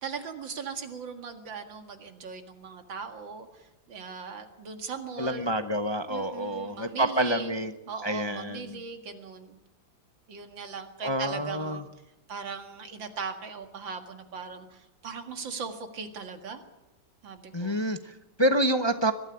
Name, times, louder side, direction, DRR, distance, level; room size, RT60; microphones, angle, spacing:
voice 1, 0.0-5.5 6.1-7.5 7.9-9.6 10.3-11.8 12.3-16.6 17.2-17.8, right 5 dB, 90° right, 6 dB, 2.7 m, -39 dB
voice 2, 5.2-7.7 8.0-8.8 11.0-11.8 17.5-19.1, right 1 dB, 25° left, 8 dB, 0.5 m, -28 dB
22.0 x 13.0 x 9.9 m, 0.99 s
omnidirectional pair, 2.0 m